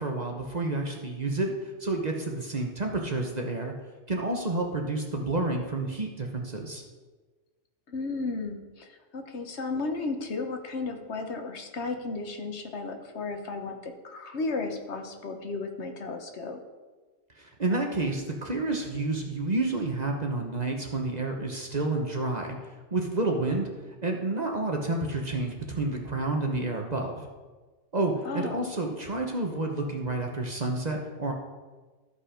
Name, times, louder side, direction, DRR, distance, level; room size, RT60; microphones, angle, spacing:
voice 1, 0.0-1.5 1.8-3.7 4.1-6.8 17.4-22.6 22.9-23.7 24.0-27.3 27.9-31.3, right 2 dB, 35° right, 1 dB, 1.0 m, -29 dB
voice 2, 7.9-16.6 28.2-28.7, left 3 dB, 65° left, 5 dB, 1.3 m, -34 dB
13.5 x 5.3 x 5.0 m, 1.3 s
omnidirectional pair, 1.2 m